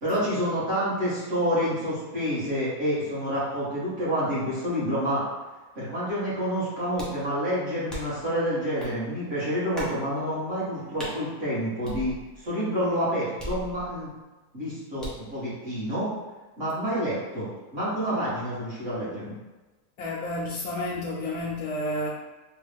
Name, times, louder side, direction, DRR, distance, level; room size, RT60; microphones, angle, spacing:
voice 1, 0.0-5.2 5.7-14.1 14.5-16.1 16.6-19.3, equal, 40° right, -10 dB, 1.7 m, -28 dB
sound 1, 7.0-7.3 7.9-8.3 8.8-8.9 9.7-10.0 11.0-11.2 11.8-12.5 13.4-14.1 15.0-15.3, equal, ahead, 0.3 m, -38 dB
voice 2, 20.0-22.1, left 1 dB, 75° left, -4 dB, 1.0 m, -30 dB
3.7 x 2.3 x 3.3 m, 1.2 s
omnidirectional pair, 1.6 m